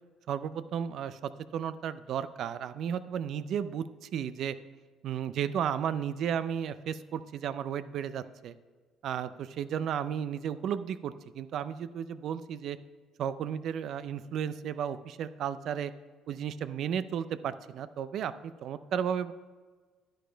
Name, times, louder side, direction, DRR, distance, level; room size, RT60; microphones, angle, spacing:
voice 1, 0.3-4.6 5.0-8.5 9.0-12.8 13.2-15.9 16.3-19.3, right 8 dB, 65° right, 14 dB, 0.5 m, -34 dB
10.0 x 10.0 x 3.4 m, 1.5 s
cardioid pair, 90°, 0 cm